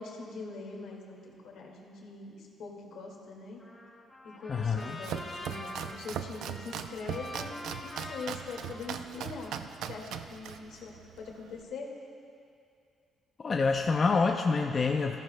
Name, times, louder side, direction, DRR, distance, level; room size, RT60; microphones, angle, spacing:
voice 1, 0.0-3.6 4.4-9.6 9.9-11.9, left 4 dB, 75° left, -1 dB, 2.0 m, -43 dB
Trumpet, 3.6-9.8, left 2 dB, 15° left, 3.0 m, -45 dB
voice 2, 4.5-5.0 13.4-15.2, left 4 dB, 40° left, 2 dB, 0.6 m, -27 dB
Domestic sounds home sounds, 4.7-11.6, right 8 dB, 80° right, 0.5 m, -40 dB
17.0 x 14.5 x 2.2 m, 2.4 s
cardioid pair, 90°, 0 cm